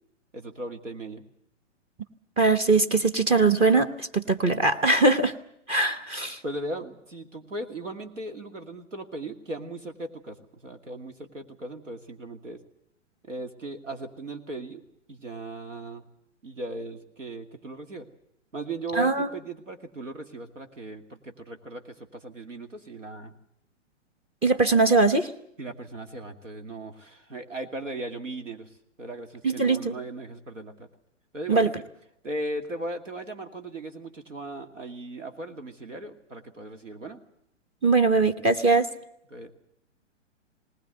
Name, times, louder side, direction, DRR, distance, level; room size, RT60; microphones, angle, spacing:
voice 1, 0.3-1.2 6.4-12.6 13.3-14.8 15.1-16.1 16.4-18.1 18.5-23.3 25.6-28.7 29.0-30.9 31.3-31.7 32.2-37.2 39.3-39.5, right 2 dB, 80° right, 6 dB, 2.5 m, -37 dB
voice 2, 2.4-5.3 5.7-6.4 18.9-19.3 24.4-25.3 29.4-29.9 31.5-31.7 37.8-38.9, right 3 dB, 15° right, 10 dB, 0.8 m, -21 dB
19.5 x 19.5 x 8.0 m, 0.77 s
figure-of-eight pair, 120°, 37 cm